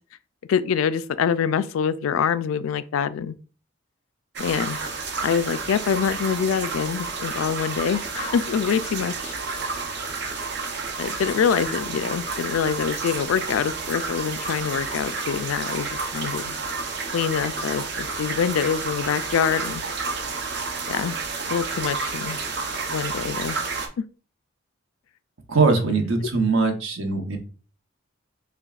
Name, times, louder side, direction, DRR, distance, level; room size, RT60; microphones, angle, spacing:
voice 1, 0.5-3.3 4.4-4.8 5.2-9.3 11.0-16.6 17.1-19.8 20.9-21.2 21.5-22.4 22.9-23.6 24.0-24.1, left 7 dB, 85° left, 0.3 m, -25 dB
sound 1, 4.3-23.9, right 4 dB, 55° right, 0.6 m, -30 dB
voice 2, 25.5-27.4, right 4 dB, 80° right, 0.9 m, -21 dB
6.7 x 2.3 x 2.4 m
head